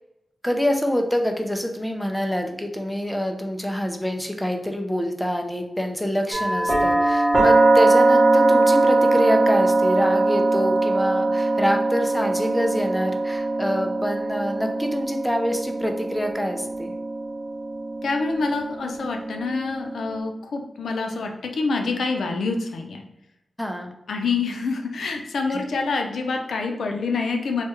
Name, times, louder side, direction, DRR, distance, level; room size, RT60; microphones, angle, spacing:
voice 1, 0.4-16.9 23.6-23.9 25.5-25.6, equal, 5° left, 4 dB, 0.4 m, -26 dB
sound 1, 6.3-20.2, right 2 dB, 50° right, 0.9 m, -21 dB
voice 2, 18.0-23.0 24.1-27.6, left 4 dB, 85° left, 3 dB, 0.4 m, -26 dB
3.2 x 2.3 x 3.0 m, 0.91 s
wide cardioid pair, 115°, 0 cm